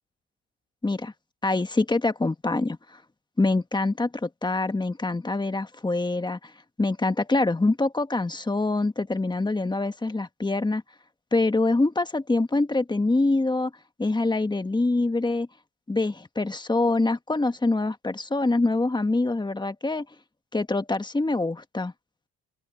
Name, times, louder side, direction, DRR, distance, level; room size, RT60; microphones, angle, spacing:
voice 1, 0.8-1.1 1.4-3.0 3.4-6.5 6.8-10.8 11.3-13.7 14.0-15.5 15.9-20.0 20.5-21.9, left 2 dB, 15° left, 1.5 m, -25 dB
open air
cardioid pair, 90°, 30 cm